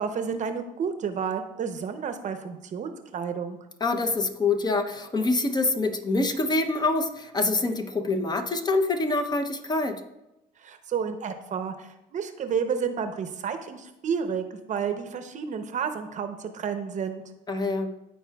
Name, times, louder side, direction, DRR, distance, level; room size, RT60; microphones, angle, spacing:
voice 1, 0.0-3.6 10.6-17.2, right 6 dB, 45° right, 8 dB, 0.7 m, -31 dB
voice 2, 3.8-10.0 17.5-17.9, left 3 dB, 25° left, 6 dB, 0.7 m, -25 dB
13.5 x 4.5 x 2.3 m, 0.93 s
cardioid pair, 110°, 17 cm